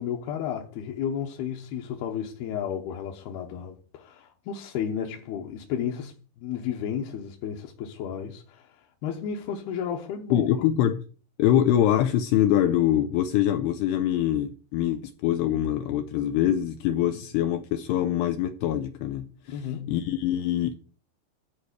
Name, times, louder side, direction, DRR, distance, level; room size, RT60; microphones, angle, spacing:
voice 1, 0.0-10.6 17.1-17.2 19.5-20.0, left 8 dB, 70° left, 2.7 m, -33 dB
voice 2, 10.3-11.0 11.4-20.7, left 11 dB, 85° left, 2.5 m, -24 dB
13.0 x 4.7 x 8.1 m
omnidirectional pair, 5.5 m